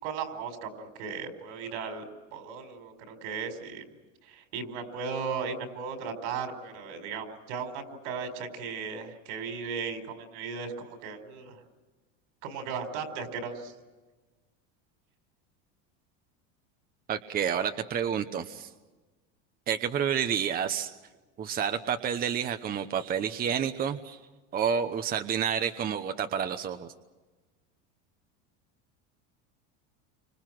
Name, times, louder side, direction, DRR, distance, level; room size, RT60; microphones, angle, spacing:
voice 1, 0.0-2.1 2.3-3.8 4.3-11.6 12.4-13.7, right 5 dB, 75° right, 7 dB, 5.0 m, -36 dB
voice 2, 17.1-18.7 19.7-20.9 21.4-24.2 24.5-26.9, right 8 dB, 25° right, 8 dB, 1.0 m, -29 dB
29.5 x 25.5 x 6.1 m, 1.2 s
supercardioid pair, 145°, 35 cm